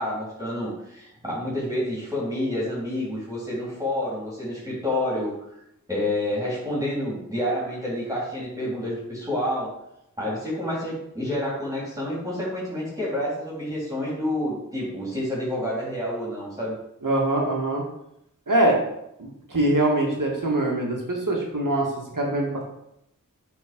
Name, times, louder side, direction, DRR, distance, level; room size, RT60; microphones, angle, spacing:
voice 1, 0.0-5.4 5.9-9.7 10.2-16.8, left 1 dB, 10° right, -7 dB, 3.6 m, -28 dB
voice 2, 17.0-17.8 18.5-18.8 19.2-22.6, right 1 dB, 70° right, -1 dB, 2.2 m, -23 dB
8.6 x 4.7 x 5.3 m, 0.81 s
wide cardioid pair, 55°, 33 cm